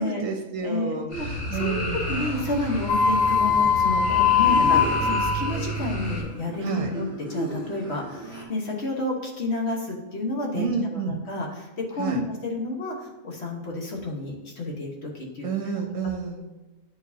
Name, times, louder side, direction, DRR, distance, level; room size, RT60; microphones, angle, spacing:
voice 1, 0.0-2.1 6.6-6.9 10.5-11.1 12.0-12.2 15.4-16.4, right 5 dB, 70° right, 2 dB, 1.1 m, -30 dB
voice 2, 0.6-1.3 1.5-15.5, left 2 dB, 50° left, -1 dB, 1.4 m, -30 dB
sound 1, 1.1-6.2, right 1 dB, 90° left, 1.9 m, -31 dB
sound 2, 2.1-8.4, right 1 dB, 5° right, 1.3 m, -37 dB
sound 3, 2.9-5.5, left 6 dB, 70° left, 1.2 m, -21 dB
10.0 x 4.7 x 2.7 m, 1.1 s
omnidirectional pair, 1.5 m